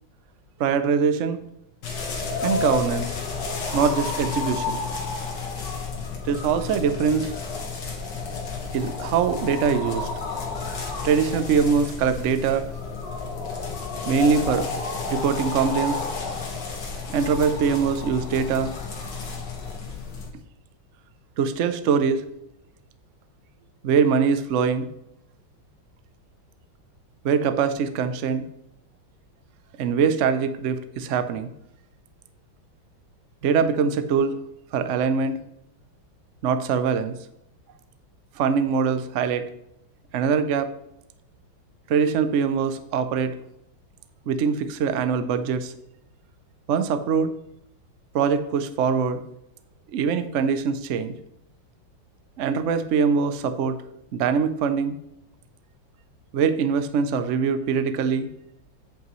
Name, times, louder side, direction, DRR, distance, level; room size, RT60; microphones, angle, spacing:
voice 1, 0.6-1.4 2.4-3.2 3.7-4.8 6.2-7.3 8.7-10.1 11.0-12.7 14.1-14.7 15.1-16.0 17.1-18.7 21.4-22.2 23.8-24.9 27.2-28.4 29.8-31.5 33.4-34.4 34.7-35.4 36.4-37.1 38.4-39.5 40.1-40.7 41.9-43.3 44.3-45.7 46.7-47.3 48.1-49.2 49.9-51.1 52.4-53.8 54.1-55.0 56.3-58.3, right 6 dB, 90° right, 10 dB, 0.6 m, -23 dB
sound 1, 1.8-20.3, left 4 dB, 60° left, 2.1 m, -31 dB
8.6 x 8.2 x 3.1 m, 0.80 s
omnidirectional pair, 2.2 m